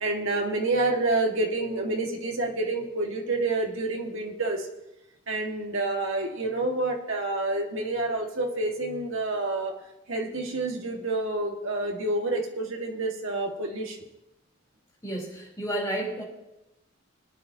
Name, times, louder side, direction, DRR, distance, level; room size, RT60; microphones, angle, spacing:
voice 1, 0.0-4.6 5.3-9.7 10.1-14.0, right 2 dB, 75° right, 0 dB, 1.8 m, -28 dB
voice 2, 15.0-16.2, right 1 dB, 15° left, -4 dB, 3.6 m, -31 dB
22.5 x 9.9 x 2.8 m, 0.93 s
head